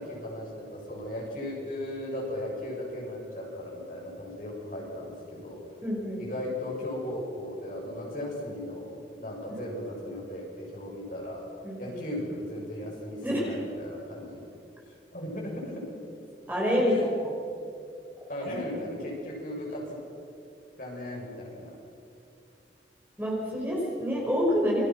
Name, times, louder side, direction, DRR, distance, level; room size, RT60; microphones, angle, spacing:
voice 1, 0.0-5.7 6.2-11.5 11.8-14.5 15.1-15.9 16.8-17.0 18.3-20.0 20.8-21.8, left 1 dB, 50° left, -2 dB, 7.2 m, -37 dB
voice 2, 5.8-6.2 9.5-9.6 11.6-12.0 13.2-13.5 16.5-17.1 23.2-24.9, equal, 10° right, -4 dB, 5.7 m, -27 dB
29.0 x 24.0 x 6.2 m, 2.6 s
head